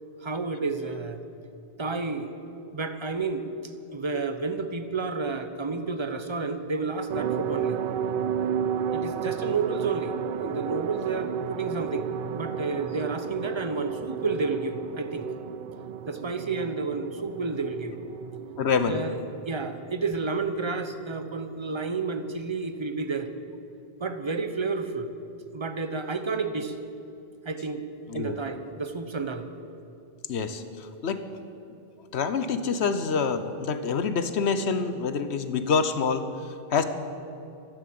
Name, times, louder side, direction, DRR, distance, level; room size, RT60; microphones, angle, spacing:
voice 1, 0.2-1.2 1.8-2.3 2.7-7.8 8.9-15.3 16.1-18.0 18.9-19.2 19.4-23.3 24.0-25.1 25.5-26.8 27.4-27.8 28.1-29.5, right 4 dB, 30° right, 9 dB, 0.8 m, -30 dB
sound 1, 7.1-21.2 21.5-21.6 21.9-22.0, right 8 dB, 60° right, 0.7 m, -33 dB
voice 2, 18.6-19.0 28.1-28.3 30.3-31.2 32.1-36.8, left 5 dB, 85° left, 10 dB, 1.2 m, -27 dB
14.0 x 11.5 x 7.8 m, 2.8 s
omnidirectional pair, 1.1 m